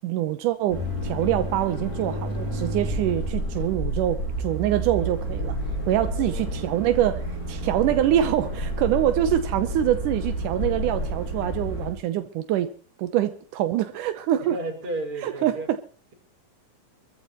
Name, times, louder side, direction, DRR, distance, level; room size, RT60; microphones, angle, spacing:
voice 1, 0.0-5.6 5.9-12.7 13.0-14.6 15.2-15.8, right 12 dB, 85° right, 10 dB, 2.4 m, -25 dB
sound 1, 0.7-11.9, right 1 dB, 25° left, 8.5 m, -30 dB
voice 2, 6.1-6.6 7.7-7.8 14.5-15.7, right 2 dB, 45° right, 1 dB, 5.7 m, -33 dB
26.0 x 14.5 x 3.1 m, 0.40 s
omnidirectional pair, 3.6 m